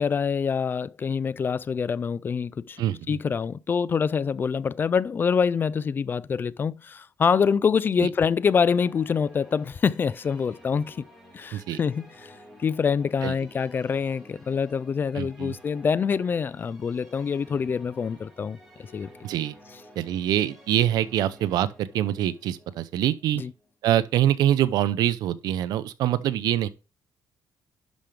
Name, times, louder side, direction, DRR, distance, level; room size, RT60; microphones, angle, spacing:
voice 1, 0.0-2.8 3.1-11.0 11.3-12.3 12.6-18.6 18.9-19.1 23.4-23.5, left 6 dB, 30° left, 0.3 m, -25 dB
voice 2, 2.8-3.2 8.0-8.1 11.5-11.8 13.2-13.3 15.1-15.5 19.2-19.5 20.0-23.4 23.8-26.7, right 12 dB, 80° right, 0.7 m, -25 dB
sound 1, 8.2-24.2, equal, 5° right, 3.6 m, -52 dB
11.5 x 5.2 x 3.3 m
cardioid pair, 140°, 7 cm